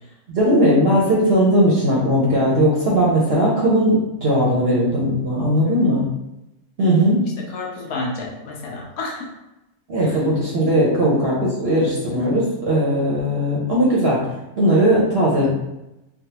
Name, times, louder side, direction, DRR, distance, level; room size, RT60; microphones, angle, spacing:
voice 1, 0.3-6.0 6.8-7.2 9.9-14.2 14.6-15.5, equal, 55° right, -5 dB, 0.7 m, -18 dB
voice 2, 5.6-5.9 7.5-9.3 10.0-10.2, left 3 dB, 75° left, 0 dB, 1.1 m, -31 dB
3.4 x 2.3 x 2.8 m, 0.94 s
omnidirectional pair, 1.6 m